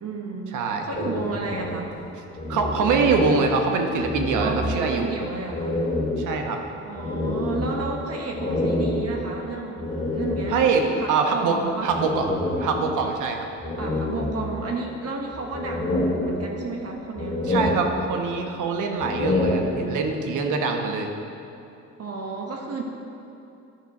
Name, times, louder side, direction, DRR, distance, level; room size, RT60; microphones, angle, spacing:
voice 1, 0.0-0.5 0.8-1.9 4.4-5.8 6.8-9.9 10.1-11.9 13.8-17.4 22.0-22.8, right 3 dB, 55° right, 1 dB, 1.1 m, -32 dB
voice 2, 0.5-0.9 2.5-5.1 6.2-6.6 10.5-12.2 12.6-13.5 17.4-21.1, right 4 dB, 80° right, 3 dB, 1.0 m, -24 dB
sound 1, 0.9-3.7 4.0-5.1 5.5-10.9 11.9-13.2 13.6-14.9 15.3-16.8 17.1-18.4 18.9-20.2, left 1 dB, 25° left, 2.2 m, -28 dB
11.0 x 5.7 x 4.8 m, 2.7 s
cardioid pair, 90°, 30 cm